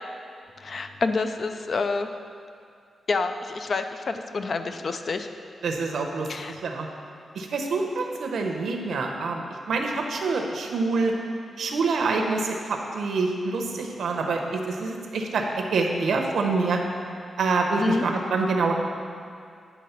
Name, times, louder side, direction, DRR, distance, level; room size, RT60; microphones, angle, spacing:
voice 1, 0.6-2.1 3.1-5.3 6.3-6.5 17.8-18.1, left 3 dB, 45° left, 7 dB, 0.4 m, -28 dB
voice 2, 5.6-6.9 7.4-11.1 11.6-15.4 15.7-16.8 17.4-18.7, right 3 dB, 80° right, 2 dB, 0.8 m, -26 dB
9.1 x 3.6 x 5.8 m, 2.3 s
wide cardioid pair, 155°, 0 cm